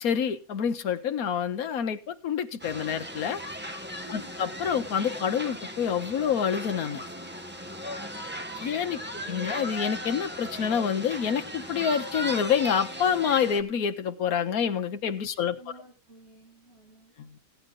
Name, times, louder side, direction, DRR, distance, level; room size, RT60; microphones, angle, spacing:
voice 1, 0.0-3.4 4.1-7.0 8.6-9.0 9.3-15.6 17.2-17.4, left 7 dB, 75° left, 1.5 m, -27 dB
sound 1, 2.6-13.6, equal, 10° right, 1.2 m, -37 dB
voice 2, 4.0-4.4 8.9-9.5 15.2-17.1, right 1 dB, 45° right, 5.4 m, -53 dB
16.5 x 9.3 x 3.8 m
omnidirectional pair, 1.5 m